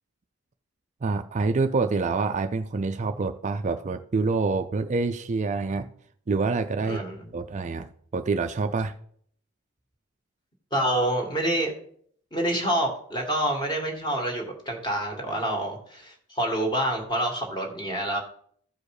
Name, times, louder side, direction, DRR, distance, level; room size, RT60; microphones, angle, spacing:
voice 1, 1.0-5.9 6.3-7.0 7.3-8.9, right 4 dB, 35° right, 0.4 m, -26 dB
voice 2, 6.9-7.3 10.7-11.7 12.3-18.2, right 1 dB, 20° left, 2.0 m, -27 dB
14.0 x 4.9 x 4.8 m
head